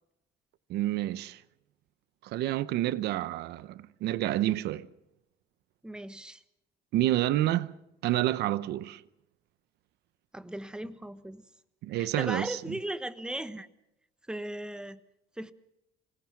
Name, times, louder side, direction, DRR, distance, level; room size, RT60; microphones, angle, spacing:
voice 1, 0.7-1.4 2.2-4.9 6.9-7.7 8.0-9.0 11.8-12.6, right 14 dB, 80° right, 0.8 m, -29 dB
voice 2, 5.8-6.4 10.3-11.4 11.9-13.7 14.3-15.0 15.4-15.5, right 1 dB, 5° right, 1.1 m, -37 dB
26.5 x 18.0 x 6.0 m
cardioid pair, 110°, 17 cm